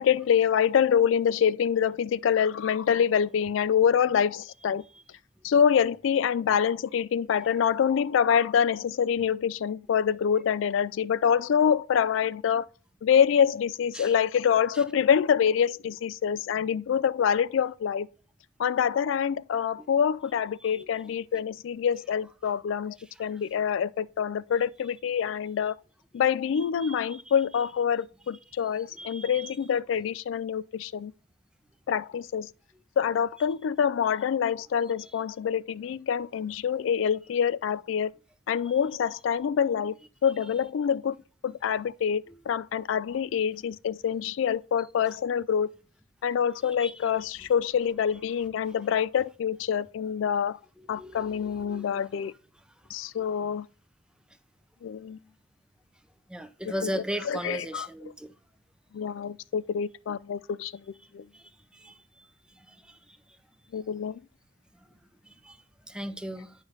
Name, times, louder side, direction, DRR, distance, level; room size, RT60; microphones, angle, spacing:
voice 1, 0.0-4.8 5.4-12.6 13.0-18.1 18.6-25.7 26.1-31.1 31.9-32.5 33.0-38.1 38.5-39.9 40.2-41.2 41.4-45.7 46.2-50.6 50.9-52.3 52.9-53.7 54.8-55.2 56.6-57.9 58.9-60.8 61.1-61.2 63.7-64.2, left 8 dB, 80° left, 0.3 m, -26 dB
voice 2, 26.8-27.2 28.9-29.5 38.7-38.8 46.8-46.9 50.9-52.0 56.3-58.3 61.3-61.4 61.7-61.9 62.9-63.0 65.4-65.6 65.9-66.5, equal, 5° right, 0.6 m, -37 dB
9.4 x 5.0 x 4.0 m
head